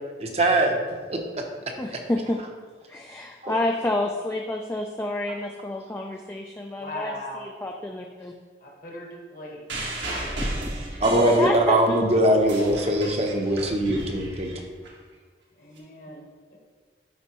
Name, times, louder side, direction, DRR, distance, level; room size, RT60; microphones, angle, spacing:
voice 1, 0.2-0.7 1.1-1.4 3.4-3.5 11.0-14.5, right 1 dB, 35° right, 2 dB, 0.7 m, -21 dB
voice 2, 1.8-2.4 2.9-8.3 11.4-12.0, left 1 dB, 15° left, 1 dB, 0.3 m, -29 dB
voice 3, 6.8-7.4 8.6-9.6 15.6-16.2 16.5-16.6, left 2 dB, 50° left, 0 dB, 1.3 m, -38 dB
sound 1, 9.7-11.9 12.3-14.9 15.8-15.9, right 1 dB, 90° right, 1.7 m, -33 dB
11.0 x 4.2 x 3.0 m, 1.5 s
head